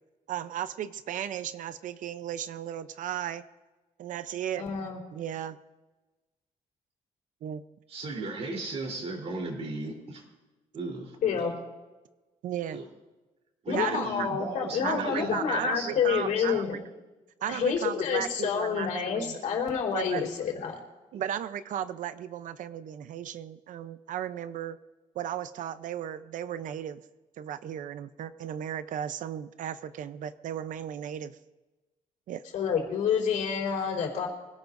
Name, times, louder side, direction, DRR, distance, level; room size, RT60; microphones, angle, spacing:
voice 1, 0.3-3.4 4.0-4.7 5.1-5.6 7.4-7.6 12.4-12.8 13.7-14.3 14.8-16.8 17.4-19.6 19.9-20.2 21.1-24.8 25.1-27.0 27.4-31.4 32.3-32.4, right 10 dB, 70° right, 12 dB, 0.7 m, -35 dB
voice 2, 4.6-5.0 11.2-11.5 13.7-16.8 17.5-20.8 32.5-34.3, left 7 dB, 75° left, 0 dB, 4.2 m, -28 dB
voice 3, 7.9-10.3 10.7-11.5 12.7-12.9 13.6-16.6, right 2 dB, 50° right, 1 dB, 3.7 m, -36 dB
25.0 x 17.0 x 2.7 m, 1.2 s
cardioid pair, 150°, 14 cm